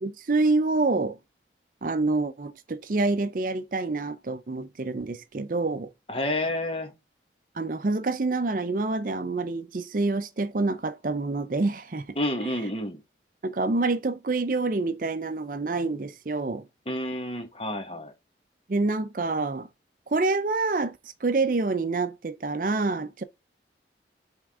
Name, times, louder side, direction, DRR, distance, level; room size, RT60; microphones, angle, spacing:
voice 1, 0.0-1.2 1.8-5.9 7.6-12.0 13.4-16.6 18.7-19.7 20.1-23.2, right 3 dB, 50° right, 0.5 m, -27 dB
voice 2, 6.1-6.9 12.2-13.0 16.9-18.1, left 1 dB, 30° left, 1.4 m, -29 dB
8.2 x 3.6 x 3.6 m
head